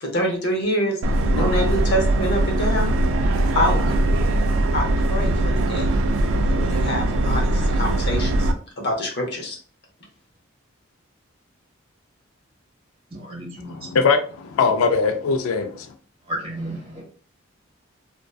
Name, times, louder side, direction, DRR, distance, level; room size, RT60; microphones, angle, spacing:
voice 1, 0.0-2.9 3.5-4.0 4.7-5.9 6.5-8.5 8.8-9.6, equal, 55° left, 1 dB, 0.7 m, -26 dB
Subway metro underground, 1.0-8.5, right 1 dB, 70° right, 0.3 m, -21 dB
voice 2, 13.6-15.9, left 4 dB, 90° left, 7 dB, 0.4 m, -21 dB
voice 3, 16.3-17.0, right 1 dB, 30° right, -2 dB, 0.9 m, -31 dB
2.6 x 2.2 x 2.2 m, 0.43 s
head